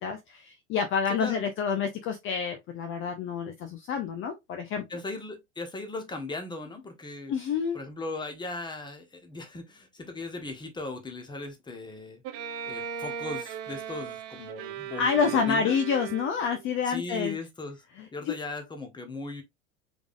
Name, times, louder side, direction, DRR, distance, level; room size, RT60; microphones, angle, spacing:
voice 1, 0.0-4.8 7.3-7.8 15.0-17.3 18.0-18.4, left 6 dB, 35° left, 0.8 m, -28 dB
voice 2, 4.9-7.3 7.7-12.2 12.7-15.8 16.9-17.8 18.1-19.4, left 3 dB, 10° left, 1.2 m, -38 dB
Bowed string instrument, 12.2-16.7, right 8 dB, 40° right, 0.8 m, -37 dB
4.9 x 3.6 x 2.5 m
figure-of-eight pair, 80°, 37 cm